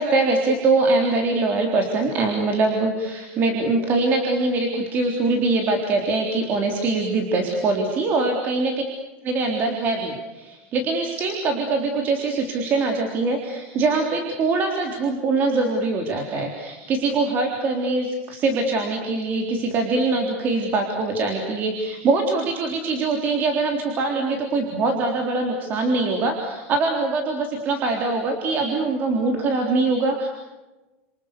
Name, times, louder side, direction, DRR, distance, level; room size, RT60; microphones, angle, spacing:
voice 1, 0.0-8.7 9.3-30.3, right 3 dB, 25° right, 2 dB, 3.8 m, -23 dB
30.0 x 28.0 x 6.8 m, 1.1 s
supercardioid pair, 175°, 7 cm